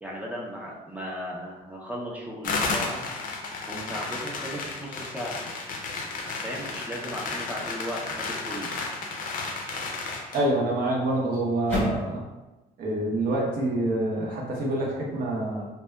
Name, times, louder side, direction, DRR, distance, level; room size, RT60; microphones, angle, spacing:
voice 1, 0.0-3.0 3.7-5.4 6.4-8.7, equal, 10° right, -4 dB, 0.4 m, -36 dB
sound 1, 2.4-10.4, left 3 dB, 55° left, 0.4 m, -33 dB
sound 2, 3.3-3.6 4.1-12.1, left 1 dB, 10° left, 0.9 m, -39 dB
voice 2, 10.3-12.2 12.8-15.7, right 1 dB, 60° right, -2 dB, 0.7 m, -26 dB
2.6 x 2.1 x 2.2 m, 1.1 s
cardioid pair, 110°, 17 cm